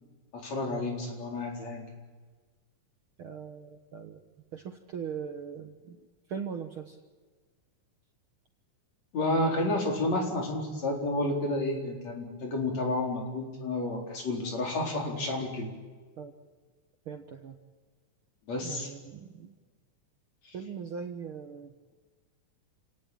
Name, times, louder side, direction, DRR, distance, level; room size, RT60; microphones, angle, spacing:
voice 1, 0.3-1.8 9.1-15.7 18.5-18.9, left 2 dB, 55° left, 1 dB, 5.4 m, -30 dB
voice 2, 3.2-4.2 4.5-6.0 6.3-7.0 16.2-16.3 17.1-17.6 18.6-19.5 20.5-21.7, right 7 dB, 55° right, 5 dB, 1.7 m, -40 dB
28.5 x 18.0 x 9.0 m, 1.4 s
omnidirectional pair, 3.7 m